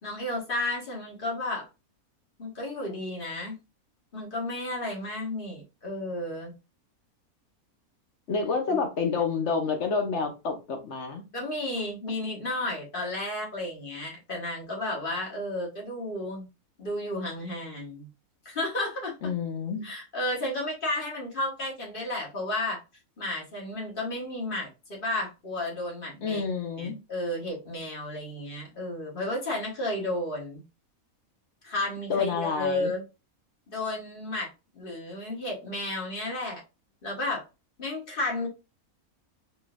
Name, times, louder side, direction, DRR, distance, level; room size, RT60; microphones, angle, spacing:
voice 1, 0.0-1.7 2.4-3.6 4.1-6.5 11.3-16.5 16.8-18.1 18.4-19.3 19.8-22.8 23.2-26.4 26.8-30.6 31.6-33.0 33.7-34.5 34.7-36.6 37.0-37.4 37.8-38.5, left 1 dB, 40° left, 1.2 m, -32 dB
voice 2, 8.3-11.2 19.2-19.8 26.2-27.0 32.1-32.9, left 5 dB, 60° left, 0.9 m, -28 dB
3.7 x 2.6 x 2.5 m
omnidirectional pair, 1.6 m